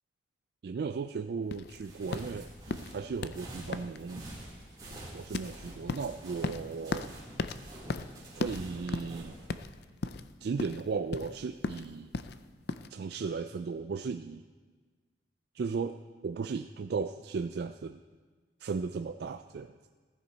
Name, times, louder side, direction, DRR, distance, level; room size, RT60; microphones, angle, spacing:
voice 1, 0.6-2.5 2.9-4.2 5.1-7.1 8.4-9.4 10.4-12.1 12.9-14.5 15.5-18.0 18.6-19.7, right 5 dB, 55° right, 8 dB, 0.3 m, -36 dB
sound 1, 1.5-12.9, left 4 dB, 55° left, 0.4 m, -38 dB
sound 2, 1.7-9.5, right 1 dB, 20° right, 3.2 m, -47 dB
15.0 x 12.5 x 4.1 m, 1.4 s
head